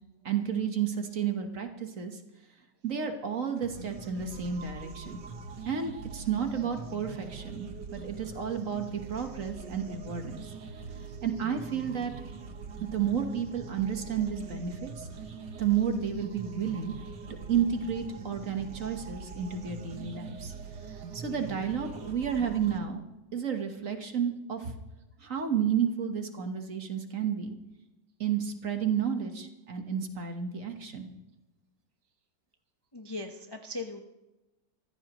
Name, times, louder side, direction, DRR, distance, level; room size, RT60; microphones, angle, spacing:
voice 1, 0.2-2.2 2.8-5.2 5.6-10.5 11.2-12.1 12.9-15.1 15.5-16.9 17.5-20.5 21.1-23.0 23.3-24.7 25.2-27.6 28.2-31.1, right 8 dB, 45° right, 5 dB, 1.5 m, -31 dB
sound 1, 3.6-22.8, right 5 dB, 65° right, 2.0 m, -43 dB
voice 2, 32.9-34.0, left 2 dB, 20° left, 3 dB, 0.6 m, -38 dB
24.0 x 15.0 x 3.1 m, 1.0 s
omnidirectional pair, 2.0 m